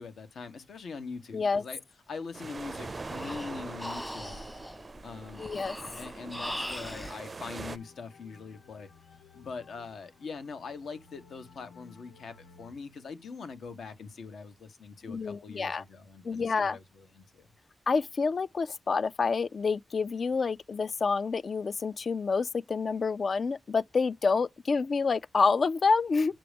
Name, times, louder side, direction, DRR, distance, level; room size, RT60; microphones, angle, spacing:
voice 1, 0.0-1.8 2.1-4.4 5.0-5.4 6.0-8.9 9.3-17.5, left 5 dB, 75° left, 1.3 m, -42 dB
voice 2, 1.3-1.6 5.4-5.8 15.1-15.8 16.2-16.8 17.9-26.3, left 4 dB, 45° left, 0.3 m, -28 dB
sound 1, 2.3-7.8, right 3 dB, 30° right, 0.4 m, -42 dB
Breathing, 2.6-7.2, left 1 dB, 15° left, 1.0 m, -41 dB
sound 2, 7.0-12.7, left 5 dB, 90° left, 1.1 m, -57 dB
7.7 x 2.9 x 5.1 m
wide cardioid pair, 155°, 0 cm